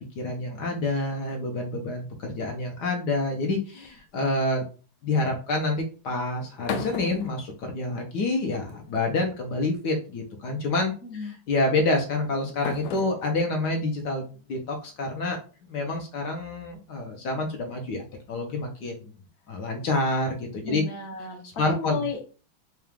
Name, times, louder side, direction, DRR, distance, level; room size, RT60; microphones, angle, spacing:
voice 1, 0.0-4.6 5.0-15.4 15.7-19.1 19.5-20.8 21.6-22.0, left 2 dB, 65° left, 2 dB, 1.3 m, -28 dB
sound 1, 3.8-4.3 6.3-8.2 8.5-9.2 10.3-10.6 11.7-15.0, left 6 dB, 90° left, 1.4 m, -39 dB
voice 2, 11.0-11.3 20.6-22.2, left 5 dB, 45° left, 2 dB, 1.0 m, -33 dB
4.7 x 2.4 x 3.4 m, 0.36 s
omnidirectional pair, 2.2 m